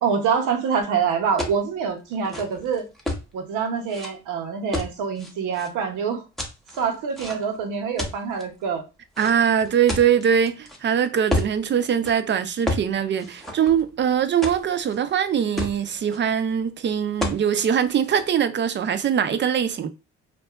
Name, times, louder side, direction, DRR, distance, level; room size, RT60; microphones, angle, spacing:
voice 1, 0.0-2.9 3.3-6.2 6.8-8.8, right 6 dB, 85° right, 0.8 m, -25 dB
sound 1, 1.4-1.6 2.1-3.3 3.9-4.1 4.7-5.7 6.4-7.6 8.0-8.4 9.1-10.8 11.3-11.6 11.9-12.1 12.7-12.9 13.2-14.0 14.4-15.0 15.3-15.4 15.6-16.2 17.2-17.4 17.8-18.2, left 1 dB, ahead, 0.8 m, -30 dB
voice 2, 9.2-19.9, right 8 dB, 40° right, 0.4 m, -22 dB
2.6 x 2.3 x 2.3 m
cardioid pair, 90°, 30 cm